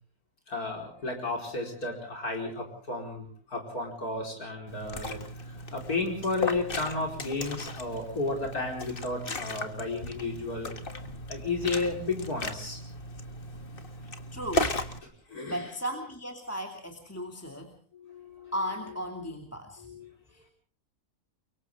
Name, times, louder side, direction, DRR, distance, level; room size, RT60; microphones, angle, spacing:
voice 1, 0.5-10.8 11.3-12.8 15.0-15.6 17.9-18.5 19.2-19.3 19.8-20.1, left 3 dB, 75° left, 2 dB, 5.2 m, -33 dB
Liquid, 4.7-15.0, left 2 dB, 35° left, 1.8 m, -36 dB
voice 2, 14.0-14.8 15.5-17.7 18.5-19.9 20.3-20.5, equal, 10° left, 3 dB, 2.6 m, -36 dB
29.5 x 24.0 x 3.7 m, 0.42 s
omnidirectional pair, 1.6 m